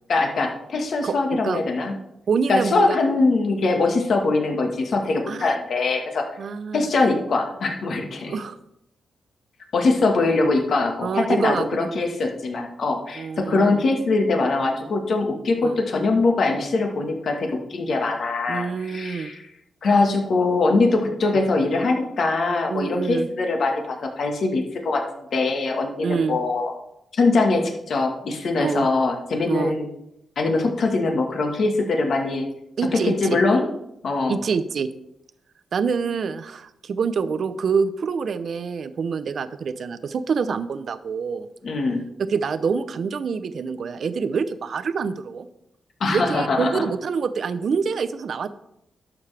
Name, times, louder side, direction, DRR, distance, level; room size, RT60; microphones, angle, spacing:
voice 1, 0.1-2.0 2.5-6.2 6.7-8.3 9.7-19.4 19.8-26.7 27.1-29.9 30.4-32.4 32.9-33.6 34.0-34.4 41.6-42.0 46.0-46.8, left 3 dB, 60° left, 3 dB, 1.5 m, -22 dB
voice 2, 1.0-1.6 2.3-3.0 5.3-5.5 6.4-6.9 8.3-8.6 11.0-11.9 13.2-13.8 15.6-15.8 18.5-19.3 22.7-23.3 26.0-26.4 28.6-28.9 29.5-29.7 32.8-33.4 34.3-34.9 35.7-41.5 42.3-45.5 46.1-48.5, right 5 dB, 60° right, 12 dB, 0.6 m, -26 dB
11.5 x 7.1 x 3.4 m, 0.80 s
cardioid pair, 115°, 0 cm